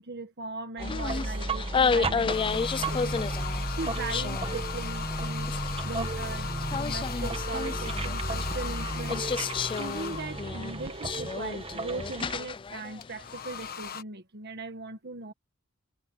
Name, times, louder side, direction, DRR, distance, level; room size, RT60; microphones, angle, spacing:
voice 1, 0.0-3.3 3.7-5.5 5.8-9.2 9.8-15.3, right 3 dB, 50° right, 1.5 m, -39 dB
sound 1, 0.8-13.6, left 5 dB, 25° left, 0.3 m, -32 dB
sound 2, 0.8-12.4, right 2 dB, 25° right, 1.4 m, -34 dB
sound 3, 2.3-10.6 13.0-14.0, left 7 dB, 45° left, 1.2 m, -38 dB
head